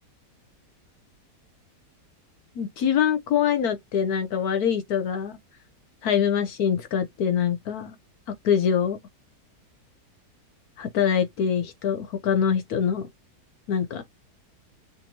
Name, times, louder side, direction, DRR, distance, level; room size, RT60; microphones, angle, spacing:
voice 1, 2.6-5.4 6.0-8.0 8.4-9.0 10.8-13.1 13.7-14.0, left 8 dB, 70° left, 1.2 m, -24 dB
5.2 x 2.6 x 2.9 m
omnidirectional pair, 1.8 m